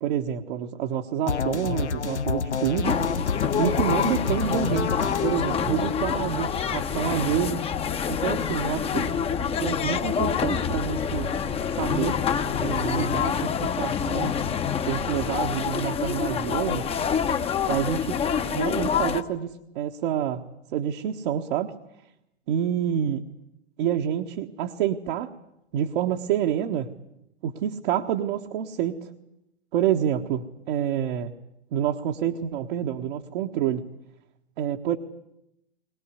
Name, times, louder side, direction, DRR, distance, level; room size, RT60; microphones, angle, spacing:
voice 1, 0.0-3.0 3.6-7.6 8.1-9.1 9.6-11.3 11.7-12.2 12.6-14.3 14.8-16.9 17.7-21.7 22.5-23.2 23.8-25.3 25.7-26.9 27.4-29.1 29.7-31.3 31.7-33.9 34.6-35.0, right 10 dB, 50° right, 2 dB, 1.6 m, -28 dB
sound 1, 1.3-7.2, left 6 dB, 85° left, 1.0 m, -29 dB
sound 2, 2.8-19.2, left 7 dB, 15° left, 1.2 m, -27 dB
21.5 x 20.0 x 9.8 m, 0.84 s
hypercardioid pair, 110°, 33 cm